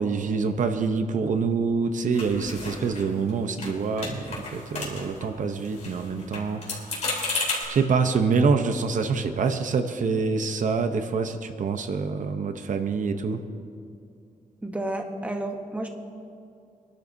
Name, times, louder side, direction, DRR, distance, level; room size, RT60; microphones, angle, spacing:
voice 1, 0.0-7.2 7.7-13.4, right 5 dB, 65° right, 7 dB, 0.8 m, -26 dB
sound 1, 2.1-3.3 3.6-3.7 4.0-5.2 5.5-7.6, left 3 dB, 55° left, 3.8 m, -32 dB
voice 2, 14.6-15.9, right 1 dB, 10° right, 3 dB, 0.9 m, -31 dB
26.0 x 12.0 x 2.7 m, 2.5 s
wide cardioid pair, 165°, 14 cm